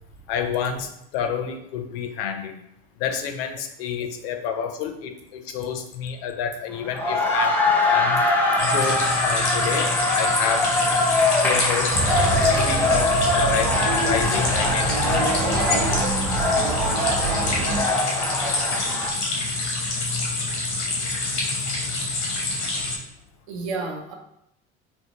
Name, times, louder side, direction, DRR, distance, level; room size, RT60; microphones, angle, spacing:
voice 1, 0.3-2.6 3.0-8.3 8.7-10.7 11.4-12.0 12.3-13.8 14.0-15.0, left 7 dB, 60° left, 6 dB, 0.5 m, -29 dB
sound 1, 6.7-19.1, left 2 dB, 5° left, 0.4 m, -23 dB
sound 2, 8.6-23.0, left 2 dB, 85° left, 0.9 m, -26 dB
Male speech man speaking / Child speech kid speaking / Chatter, 11.9-17.8, right 3 dB, 45° right, 0.9 m, -26 dB
voice 2, 23.5-24.1, right 3 dB, 75° right, 1 dB, 0.7 m, -33 dB
3.7 x 2.1 x 2.9 m, 0.78 s
hypercardioid pair, 70°, 33 cm